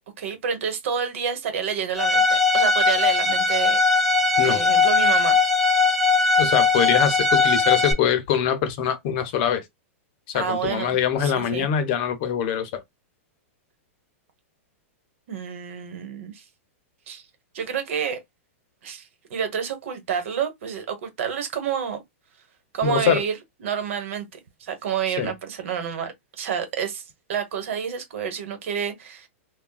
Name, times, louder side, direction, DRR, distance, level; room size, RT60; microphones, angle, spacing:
voice 1, 0.2-3.8 4.4-5.3 10.3-11.7 15.3-16.4 17.1-17.2 17.5-18.2 18.8-19.0 19.3-22.0 22.7-24.3 24.6-27.0 27.3-29.3, right 7 dB, 65° right, 1.1 m, -29 dB
Bowed string instrument, 2.0-7.9, left 4 dB, 5° left, 0.6 m, -19 dB
voice 2, 6.4-9.6 10.3-12.8 22.8-23.2 25.2-25.3, left 8 dB, 40° left, 0.7 m, -23 dB
3.5 x 2.2 x 2.3 m
hypercardioid pair, 150°, 7 cm